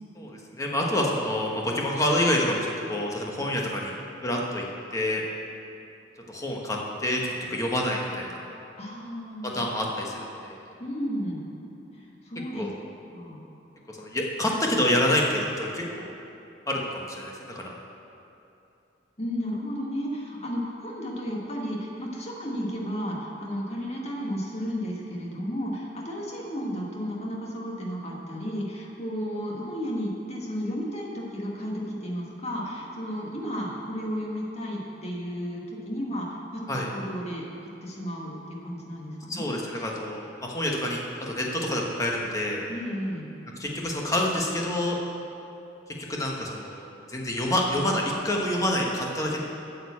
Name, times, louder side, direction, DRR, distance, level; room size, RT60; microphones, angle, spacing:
voice 1, 0.2-3.9 4.2-4.7 4.9-5.2 6.3-8.4 9.4-10.6 12.5-12.7 13.9-16.1 16.7-17.7 36.7-36.9 39.3-42.7 43.6-45.0 46.1-49.4, left 1 dB, 20° left, -1 dB, 1.2 m, -27 dB
voice 2, 8.8-9.6 10.8-11.4 11.9-12.7 13.1-13.4 19.2-39.5 42.7-43.3, equal, 35° left, -2 dB, 1.7 m, -33 dB
8.9 x 6.8 x 8.4 m, 2.8 s
head